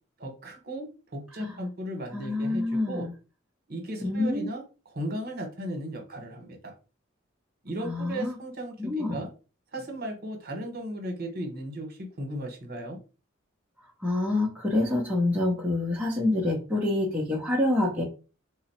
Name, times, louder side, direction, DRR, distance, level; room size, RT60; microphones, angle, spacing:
voice 1, 0.2-3.1 3.7-4.6 4.9-6.7 7.6-9.3 9.7-13.0, right 1 dB, 50° right, 4 dB, 1.1 m, -36 dB
voice 2, 2.1-3.1 4.0-4.4 7.8-8.4 8.8-9.2 14.0-18.0, left 2 dB, 5° right, -3 dB, 0.7 m, -27 dB
3.7 x 2.0 x 4.2 m, 0.33 s
head